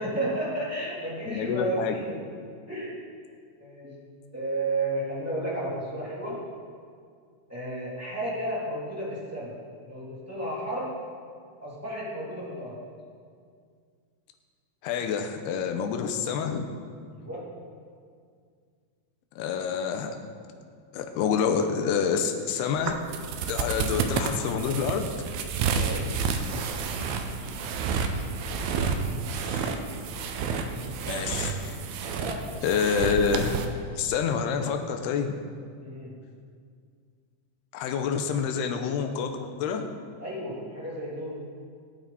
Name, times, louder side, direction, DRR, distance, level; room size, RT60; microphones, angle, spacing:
voice 1, 0.0-2.3 2.7-3.0 3.6-4.0 4.3-6.4 7.5-11.0 11.6-12.8 17.1-17.6 25.6-26.2 31.0-31.5 32.2-32.6 35.8-36.2 40.2-41.5, right 1 dB, 5° right, -8 dB, 2.5 m, -33 dB
voice 2, 1.3-2.0 14.8-16.7 19.4-20.2 20.9-23.0 23.5-25.2 29.3-29.6 31.1-31.8 32.6-33.6 34.0-35.3 37.7-39.9, left 6 dB, 75° left, 5 dB, 2.7 m, -27 dB
sound 1, 22.8-33.7, right 5 dB, 75° right, 2.4 m, -30 dB
20.5 x 8.8 x 4.2 m, 2.1 s
omnidirectional pair, 5.0 m